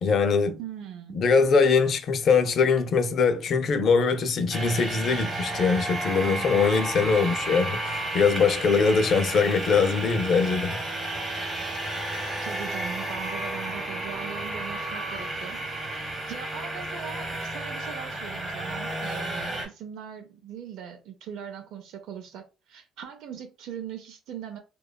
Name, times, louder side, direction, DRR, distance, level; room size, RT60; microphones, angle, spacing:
voice 1, 0.0-0.6 1.1-10.8, left 5 dB, 50° left, 0.4 m, -22 dB
voice 2, 0.6-1.2 12.4-15.6 15.9-24.6, right 8 dB, 80° right, 0.4 m, -40 dB
sound 1, 4.5-19.7, right 2 dB, 25° right, 1.0 m, -32 dB
2.8 x 2.2 x 2.2 m
cardioid pair, 135°, 0 cm